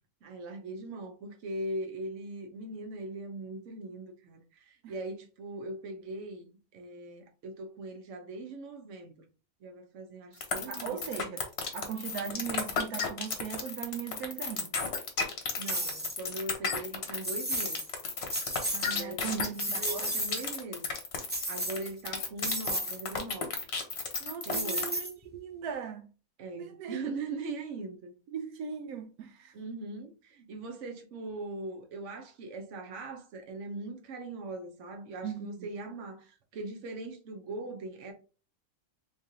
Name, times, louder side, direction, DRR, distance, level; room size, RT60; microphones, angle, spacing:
voice 1, 0.2-9.2 9.6-11.0 15.6-17.8 18.9-20.9 21.5-23.6 24.4-25.0 26.4-28.1 29.5-38.1, right 2 dB, 60° right, 1.1 m, -40 dB
sound 1, 10.4-25.1, left 5 dB, 50° left, 1.0 m, -33 dB
voice 2, 10.7-11.4 11.7-14.7 18.7-20.1 24.2-26.1 26.5-27.0 28.3-29.5 35.2-35.7, right 8 dB, 85° right, 1.1 m, -38 dB
llaves cayendo, 15.6-16.2 17.2-17.9 18.2-18.9 19.3-20.5 21.3-22.0 22.4-23.0 24.5-25.4, right 1 dB, 10° right, 0.5 m, -33 dB
3.6 x 3.3 x 2.7 m
omnidirectional pair, 1.5 m